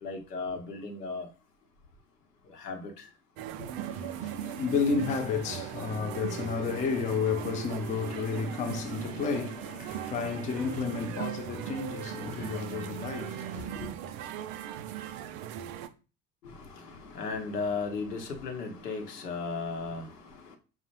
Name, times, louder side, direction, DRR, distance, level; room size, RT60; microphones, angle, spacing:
voice 1, 0.0-1.3 2.5-3.1 3.6-3.7 16.4-20.6, left 4 dB, 80° left, 0.8 m, -36 dB
sound 1, 3.4-15.9, right 10 dB, 45° right, 0.4 m, -39 dB
voice 2, 3.7-13.9, left 5 dB, 15° left, 0.4 m, -32 dB
4.4 x 2.0 x 3.0 m
figure-of-eight pair, 65°, 47 cm